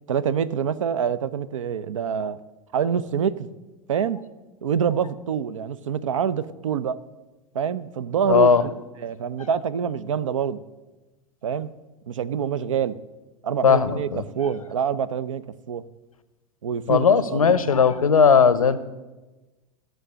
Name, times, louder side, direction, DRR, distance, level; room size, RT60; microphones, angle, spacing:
voice 1, 0.1-2.4 2.7-3.5 3.9-4.2 4.6-7.0 7.5-8.5 9.0-10.6 11.4-11.7 12.1-12.9 13.4-15.8 16.6-17.6, right 7 dB, 65° right, 16 dB, 0.5 m, -26 dB
voice 2, 8.3-8.6 13.6-14.2 16.9-18.9, left 6 dB, 80° left, 16 dB, 0.7 m, -17 dB
14.0 x 6.3 x 6.6 m, 1.2 s
figure-of-eight pair, 90°, 18 cm